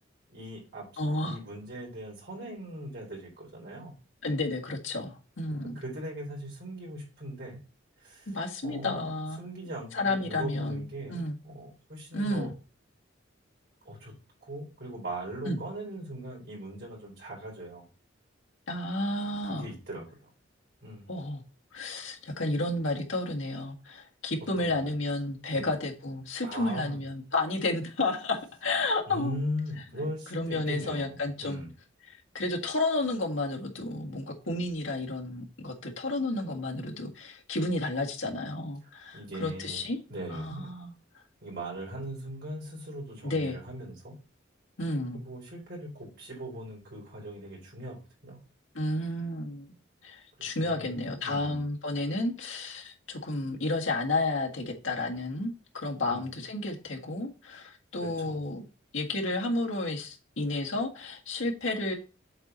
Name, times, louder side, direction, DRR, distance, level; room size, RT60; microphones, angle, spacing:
voice 1, 0.3-0.9 1.2-3.9 5.7-7.6 8.0-8.3 8.6-9.0 9.4-12.5 13.8-14.1 14.4-17.9 19.4-20.1 20.8-21.1 24.6-24.9 25.5-25.7 26.4-27.0 29.1-31.7 39.1-39.8 40.1-40.7 41.4-44.1 45.1-48.0 48.2-48.4 50.4-51.6 56.1-56.2 58.0-58.3, right 1 dB, 55° right, 4.3 m, -39 dB
voice 2, 1.0-1.4 4.2-5.8 8.3-9.4 9.9-10.8 11.1-11.4 12.1-12.5 15.4-15.6 18.7-19.7 21.1-21.4 21.7-29.4 30.0-31.6 32.1-40.0 40.3-40.9 43.2-43.6 44.8-45.2 48.7-49.7 50.0-58.6 58.9-61.9, left 2 dB, 75° left, 1.7 m, -31 dB
7.8 x 4.3 x 4.0 m
head